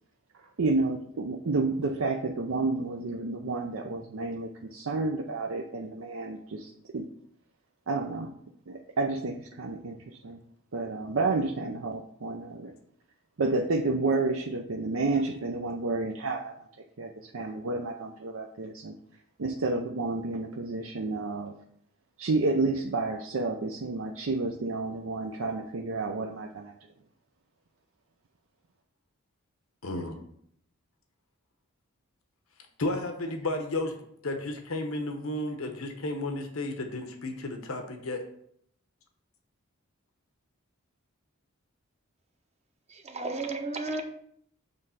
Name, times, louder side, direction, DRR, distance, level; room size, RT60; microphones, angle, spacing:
voice 1, 0.6-7.0 7.9-8.3 8.7-10.4 10.7-12.7 13.4-16.5 17.0-18.9 19.4-21.5 22.2-26.7, right 3 dB, 70° right, 2 dB, 0.5 m, -30 dB
voice 2, 29.8-30.2 32.8-34.0 34.2-38.2, left 2 dB, 80° left, 4 dB, 0.9 m, -33 dB
voice 3, 42.9-44.0, right 3 dB, 30° right, 4 dB, 0.8 m, -33 dB
7.1 x 3.2 x 5.6 m, 0.68 s
head